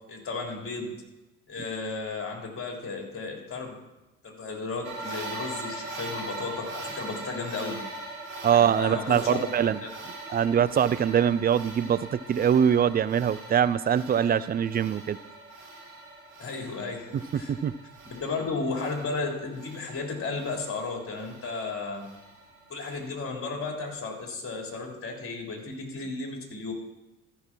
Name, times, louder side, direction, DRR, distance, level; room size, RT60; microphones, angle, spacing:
voice 1, 0.1-0.9 1.5-3.8 4.2-7.8 8.5-9.5 9.8-9.9 16.4-17.5 18.2-22.1 22.7-26.7, left 3 dB, 30° left, 1 dB, 3.4 m, -34 dB
sound 1, 4.8-23.1, right 2 dB, 85° right, 2.5 m, -41 dB
voice 2, 8.4-9.8 10.3-15.2 17.3-17.8, right 8 dB, 25° right, 16 dB, 0.4 m, -23 dB
13.5 x 5.8 x 6.0 m, 1.0 s
figure-of-eight pair, 55°, 41 cm